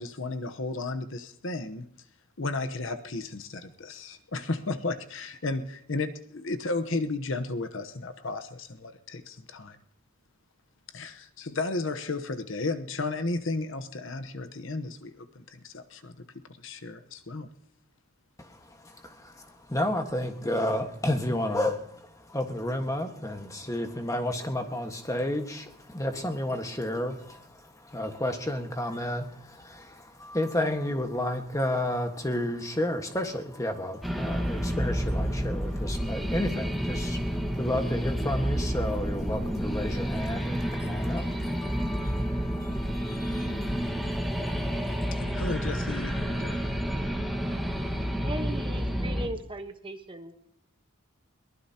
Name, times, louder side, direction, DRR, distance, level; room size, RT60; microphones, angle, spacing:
voice 1, 0.0-1.8 2.4-9.8 10.9-16.1 16.6-17.5 45.2-46.6, left 3 dB, 60° left, 8 dB, 1.0 m, -33 dB
voice 2, 18.8-21.8 22.3-27.4 27.8-45.2, left 1 dB, 15° left, 5 dB, 1.5 m, -32 dB
sound 1, 34.0-49.3, equal, ahead, 1.5 m, -30 dB
voice 3, 48.2-50.5, right 1 dB, 25° right, 6 dB, 1.1 m, -38 dB
22.0 x 19.0 x 2.9 m, 0.70 s
head